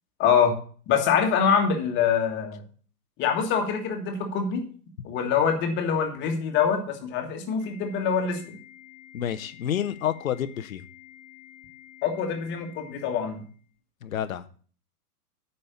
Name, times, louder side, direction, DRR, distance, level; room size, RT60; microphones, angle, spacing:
voice 1, 0.2-0.5 0.9-2.6 3.2-4.6 5.0-8.6 12.0-13.4, left 7 dB, 25° left, 4 dB, 1.7 m, -24 dB
Organ, 7.6-13.6, left 12 dB, 50° right, 4.4 m, -50 dB
voice 2, 9.1-10.8 14.0-14.4, left 10 dB, 60° left, 12 dB, 0.8 m, -29 dB
8.6 x 5.5 x 6.9 m, 0.43 s
figure-of-eight pair, 110°, 47 cm